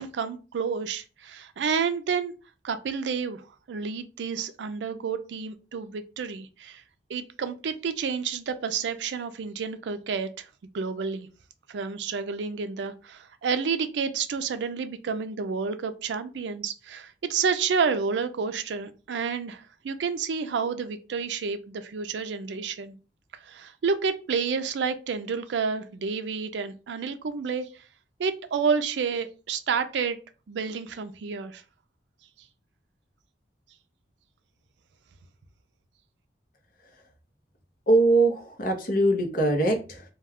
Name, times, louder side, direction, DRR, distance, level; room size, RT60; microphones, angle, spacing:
voice 1, 0.0-2.3 2.6-6.8 7.1-10.5 10.7-11.3 11.7-23.0 23.4-27.7 28.2-30.2 30.5-31.6, right 5 dB, 85° right, 9 dB, 0.4 m, -30 dB
voice 2, 37.9-40.0, right 2 dB, 55° left, 3 dB, 0.7 m, -22 dB
2.3 x 2.2 x 3.4 m, 0.33 s
head